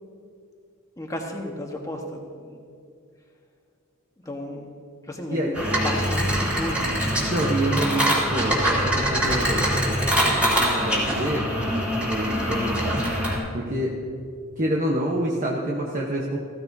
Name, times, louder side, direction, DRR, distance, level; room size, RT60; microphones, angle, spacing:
voice 1, 1.0-2.6 4.2-4.6 5.0-5.6 5.8-6.9, left 1 dB, 15° left, 1 dB, 1.3 m, -33 dB
sound 1, 5.5-13.4, equal, 5° right, 2.8 m, -23 dB
voice 2, 7.3-11.5 12.0-13.9 14.6-16.4, right 1 dB, 35° right, -2 dB, 1.0 m, -27 dB
15.5 x 15.0 x 2.7 m, 2.3 s
head